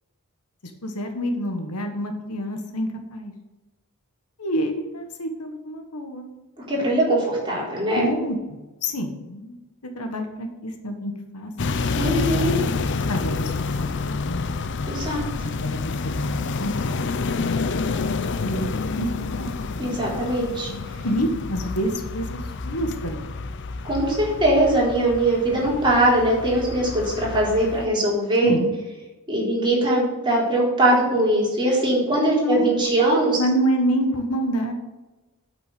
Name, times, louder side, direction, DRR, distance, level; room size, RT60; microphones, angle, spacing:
voice 1, 0.8-3.3 4.4-6.3 7.9-9.5 9.9-11.5 13.1-14.6 15.4-18.7 19.0-19.5 21.0-23.4 28.4-28.7 32.2-32.7 33.4-34.7, equal, 90° left, 5 dB, 1.5 m, -28 dB
voice 2, 6.7-8.0 12.0-12.5 14.9-15.2 19.8-20.7 23.8-28.5 29.3-33.4, right 1 dB, 20° right, -5 dB, 3.8 m, -21 dB
sound 1, 11.6-27.9, left 4 dB, 55° left, 0.6 m, -28 dB
8.6 x 6.1 x 7.7 m, 1.1 s
head